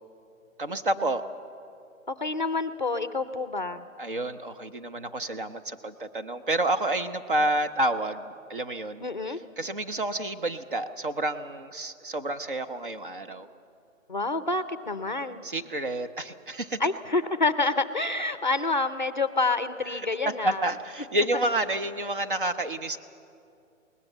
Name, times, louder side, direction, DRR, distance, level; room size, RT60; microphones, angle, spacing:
voice 1, 0.6-1.2 4.0-9.0 9.6-13.5 15.4-16.8 20.4-23.0, right 1 dB, 40° right, 9 dB, 0.8 m, -29 dB
voice 2, 2.1-3.9 9.0-9.4 14.1-15.5 16.8-20.6, left 3 dB, 35° left, 11 dB, 0.5 m, -28 dB
21.0 x 19.5 x 7.9 m, 2.5 s
hypercardioid pair, 180°, 40 cm